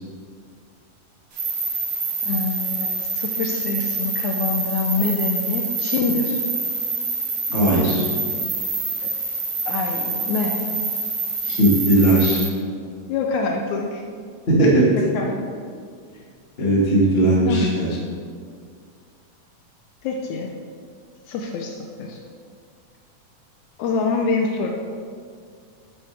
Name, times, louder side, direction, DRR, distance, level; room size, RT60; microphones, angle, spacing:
sound 1, 1.3-12.5, right 4 dB, 55° right, 2.6 m, -26 dB
voice 1, 2.2-6.4 9.0-9.1 9.7-10.7 13.1-14.0 14.9-15.4 17.5-17.7 20.0-20.5 21.3-22.2 23.8-24.7, left 4 dB, 75° left, 2 dB, 1.9 m, -25 dB
voice 2, 7.5-8.0 11.4-12.5 14.5-14.9 16.6-18.0, right 1 dB, 25° left, -5 dB, 1.4 m, -18 dB
9.6 x 8.6 x 3.4 m, 2.1 s
omnidirectional pair, 3.6 m